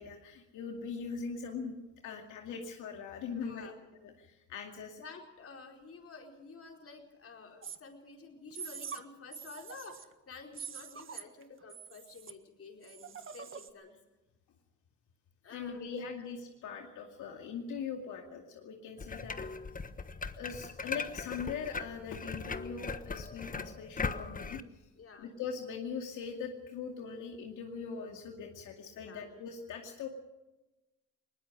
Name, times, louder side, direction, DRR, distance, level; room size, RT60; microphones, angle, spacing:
voice 1, 0.0-3.8 4.0-5.0 15.5-19.3 20.4-24.8 25.2-30.1, left 6 dB, 80° left, 2 dB, 2.4 m, -41 dB
voice 2, 3.3-3.8 5.0-13.9 15.4-16.1 25.0-25.3 29.0-29.3, left 4 dB, 50° left, 3 dB, 4.6 m, -51 dB
sound 1, 7.6-7.8 8.5-9.0 9.3-10.1 10.5-11.4 11.7-12.3 12.8-13.7, right 6 dB, 45° right, 1.7 m, -44 dB
sound 2, 19.0-24.6, left 4 dB, 25° left, 1.3 m, -39 dB
21.0 x 20.0 x 6.5 m, 1.0 s
cardioid pair, 90°, 30 cm